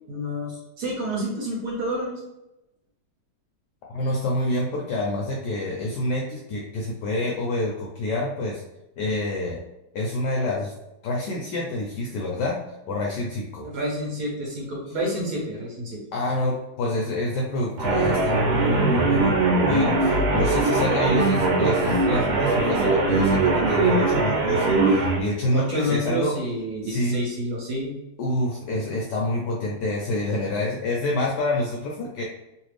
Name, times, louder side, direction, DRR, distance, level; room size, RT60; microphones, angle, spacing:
voice 1, 0.1-2.2 13.6-16.0 25.5-28.0, equal, 60° right, -4 dB, 1.3 m, -29 dB
voice 2, 3.9-8.6 9.0-9.6 9.9-10.7 11.0-12.6 12.9-13.7 16.1-19.4 19.7-26.3 26.8-27.2 28.2-32.2, left 1 dB, 75° left, -2 dB, 1.0 m, -27 dB
sound 1, 17.8-25.2, right 2 dB, 80° right, 1.5 m, -21 dB
3.2 x 2.5 x 3.2 m, 0.93 s
omnidirectional pair, 2.3 m